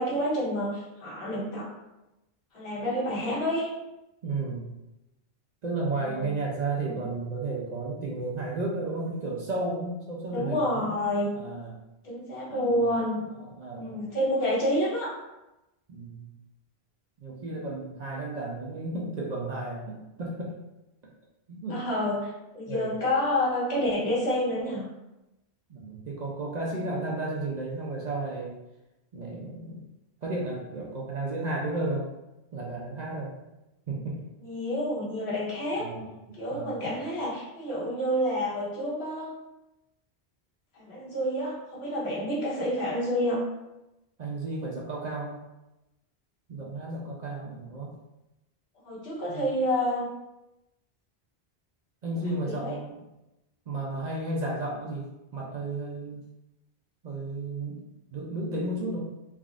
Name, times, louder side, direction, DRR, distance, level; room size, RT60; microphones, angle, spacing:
voice 1, 0.0-1.7 2.5-3.7 6.0-6.3 6.9-7.0 10.3-11.3 12.0-13.2 13.8-15.1 21.7-24.9 34.4-35.9 36.4-39.3 40.7-43.5 48.8-50.1 52.4-52.8, left 1 dB, 80° left, -7 dB, 1.2 m, -29 dB
voice 2, 4.2-4.6 5.6-10.9 11.3-11.7 12.5-12.9 13.3-14.0 15.9-16.3 17.2-20.5 21.5-21.8 22.7-23.0 25.7-28.5 29.1-29.9 30.2-32.1 32.5-33.3 33.9-34.2 35.8-36.9 44.2-45.4 46.5-47.9 49.3-49.4 52.0-53.0 53.7-56.3 57.0-57.8 58.1-59.0, right 2 dB, 50° right, -3 dB, 0.6 m, -33 dB
3.5 x 2.4 x 2.4 m, 0.96 s
omnidirectional pair, 1.1 m